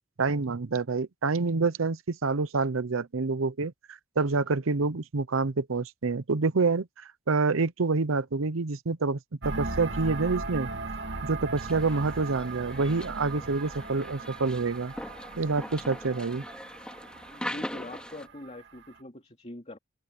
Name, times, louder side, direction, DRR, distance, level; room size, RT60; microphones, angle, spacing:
voice 1, 0.2-9.2 9.4-10.7 11.2-14.9 15.4-16.4, right 4 dB, 85° right, 0.8 m, -27 dB
sound 1, 9.4-18.9, right 3 dB, 60° right, 2.4 m, -38 dB
sound 2, 11.6-18.3, left 1 dB, 5° left, 3.6 m, -41 dB
voice 2, 17.3-19.8, left 1 dB, 35° left, 3.0 m, -43 dB
head